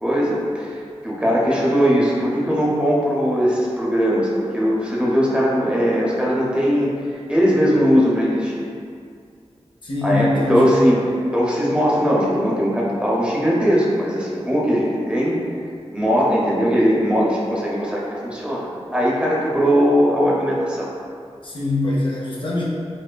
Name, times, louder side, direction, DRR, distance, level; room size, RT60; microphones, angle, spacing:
voice 1, 0.0-8.6 10.0-11.0 11.3-15.4 15.9-20.9, equal, 10° right, -5 dB, 0.7 m, -19 dB
voice 2, 9.8-10.9 21.4-22.6, left 2 dB, 50° left, -5 dB, 0.6 m, -23 dB
4.8 x 2.0 x 2.2 m, 2.3 s
wide cardioid pair, 60°, 11 cm